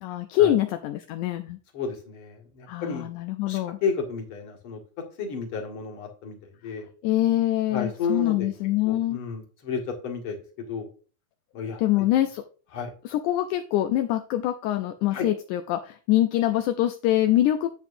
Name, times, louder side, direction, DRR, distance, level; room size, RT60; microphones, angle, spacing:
voice 1, 0.0-1.6 2.7-3.8 7.0-9.2 11.8-12.4 13.0-17.7, left 13 dB, 80° left, 7 dB, 1.8 m, -24 dB
voice 2, 1.7-3.1 3.5-4.8 5.2-6.9 7.7-8.5 8.9-10.9 11.5-12.0 12.7-12.9 15.1-15.3, left 5 dB, 45° left, 1 dB, 2.3 m, -32 dB
9.1 x 7.8 x 2.6 m, 0.38 s
omnidirectional pair, 4.0 m